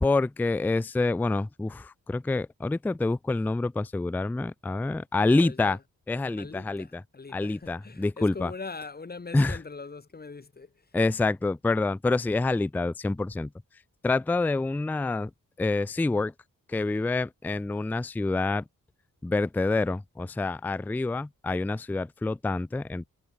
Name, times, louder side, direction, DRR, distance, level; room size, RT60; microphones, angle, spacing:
voice 1, 0.0-5.8 6.1-6.9 7.3-8.5 9.3-9.6 10.9-13.5 14.0-15.3 15.6-16.3 16.7-18.6 19.2-23.0, left 3 dB, 5° left, 0.4 m, -27 dB
voice 2, 5.2-5.8 6.4-10.9, left 4 dB, 30° left, 6.8 m, -42 dB
wide cardioid pair, 180°, 33 cm